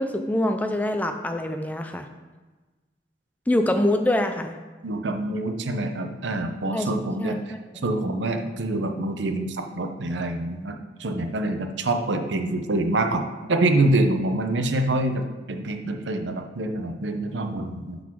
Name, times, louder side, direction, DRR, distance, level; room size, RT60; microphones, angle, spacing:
voice 1, 0.0-2.1 3.5-4.5 6.7-6.9 7.2-7.3, left 1 dB, 10° left, 6 dB, 0.4 m, -24 dB
voice 2, 4.8-7.4 7.8-18.0, right 2 dB, 85° right, 5 dB, 0.8 m, -26 dB
12.0 x 4.0 x 4.6 m, 1.3 s
head